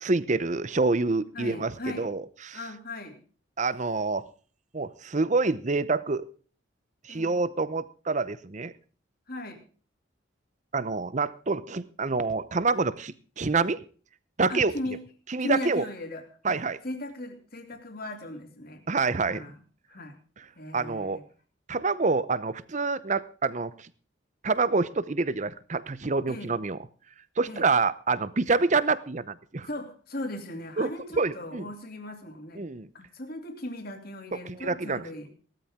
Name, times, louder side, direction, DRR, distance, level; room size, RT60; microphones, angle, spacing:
voice 1, 0.0-1.7 2.0-2.6 3.6-4.2 4.7-6.3 7.0-8.7 10.7-13.8 14.4-14.7 15.3-15.8 16.4-16.8 18.9-19.5 20.7-21.2 21.7-23.9 24.4-26.8 27.4-29.7 30.8-30.9 31.2-31.7 32.6-32.9 34.4-35.0, right 3 dB, 40° right, 16 dB, 0.7 m, -27 dB
voice 2, 1.3-2.1 2.5-3.2 7.1-7.4 9.3-9.6 14.5-15.0 15.4-16.6 16.8-18.8 19.2-19.6 19.9-20.2 20.5-21.2 26.3-26.5 27.5-27.7 29.7-32.7 32.9-35.3, left 1 dB, 50° left, 5 dB, 2.6 m, -37 dB
17.5 x 13.0 x 3.6 m, 0.40 s
head